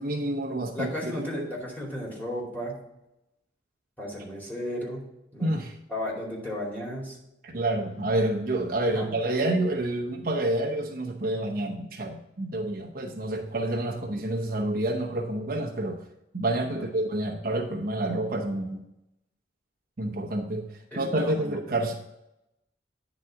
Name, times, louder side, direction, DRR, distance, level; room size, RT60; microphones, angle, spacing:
voice 1, 0.0-1.5 5.4-5.8 7.4-16.0 16.3-18.8 20.0-21.9, right 1 dB, 55° right, 2 dB, 0.8 m, -28 dB
voice 2, 0.7-2.7 4.0-5.0 5.3-5.5 5.9-7.2 8.9-9.5 16.7-16.8 20.9-21.5, left 1 dB, 10° left, -4 dB, 2.6 m, -34 dB
9.8 x 4.0 x 5.8 m, 0.87 s
head